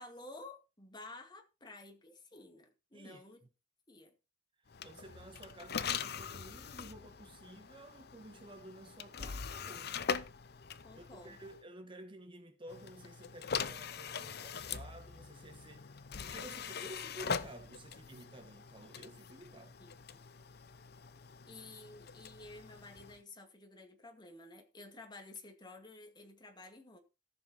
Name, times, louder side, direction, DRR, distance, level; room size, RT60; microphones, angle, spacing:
voice 1, 0.0-3.4 3.9-4.1 10.8-11.4 19.8-20.2 21.5-27.0, left 2 dB, 25° left, 2.2 m, -52 dB
sound 1, 4.7-11.6 12.7-23.2, left 6 dB, 60° left, 0.8 m, -42 dB
voice 2, 4.8-10.0 10.9-19.8, right 1 dB, 25° right, 1.3 m, -52 dB
14.5 x 7.2 x 4.3 m
head